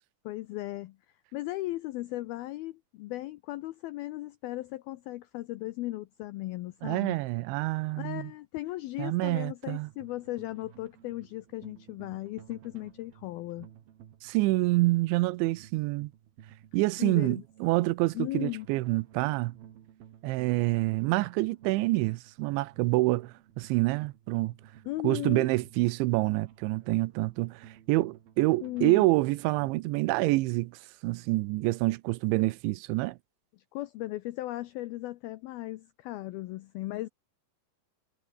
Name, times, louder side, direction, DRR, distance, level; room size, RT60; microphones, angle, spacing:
voice 1, 0.2-1.0 1.3-7.2 8.0-13.7 17.0-17.4 18.1-18.7 24.9-25.5 28.6-29.1 33.7-37.1, left 17 dB, 85° left, 2.1 m, -37 dB
voice 2, 6.8-8.3 9.0-9.9 14.2-16.1 16.7-19.6 20.2-24.5 25.0-33.2, right 20 dB, 90° right, 3.1 m, -27 dB
sound 1, 9.9-29.8, right 10 dB, 60° right, 3.7 m, -54 dB
omnidirectional pair, 5.2 m